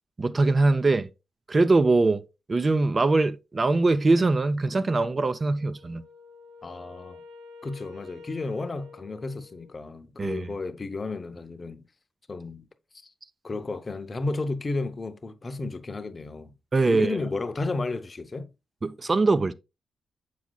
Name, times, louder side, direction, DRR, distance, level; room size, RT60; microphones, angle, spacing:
voice 1, 0.2-1.1 1.5-2.2 2.5-6.0 10.2-10.5 16.7-17.2 18.8-19.5, right 3 dB, 35° right, 0.4 m, -22 dB
Wind instrument woodwind instrument, 5.6-9.9, left 4 dB, 85° right, 2.9 m, -48 dB
voice 2, 6.6-7.2 7.6-11.9 12.3-12.7 12.9-13.1 13.4-16.5 16.8-18.5, left 3 dB, 35° left, 0.7 m, -33 dB
7.1 x 6.2 x 2.2 m
cardioid pair, 75°, 0 cm